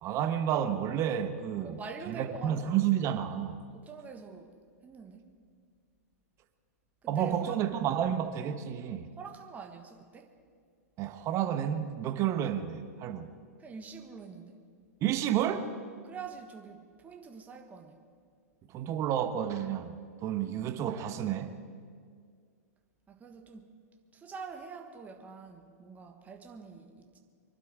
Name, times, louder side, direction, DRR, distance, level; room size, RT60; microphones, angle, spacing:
voice 1, 0.0-1.8 2.1-3.6 7.1-9.1 11.0-13.3 15.0-15.7 18.7-20.0 20.2-21.6, right 10 dB, 35° right, 9 dB, 1.2 m, -30 dB
voice 2, 1.6-2.8 3.7-4.6 4.8-5.3 7.0-7.6 9.2-10.3 13.6-14.6 16.0-18.0 23.1-23.8 24.1-27.2, right 5 dB, 20° right, 4 dB, 1.4 m, -45 dB
24.0 x 11.5 x 4.7 m, 2.1 s
hypercardioid pair, 105°, 9 cm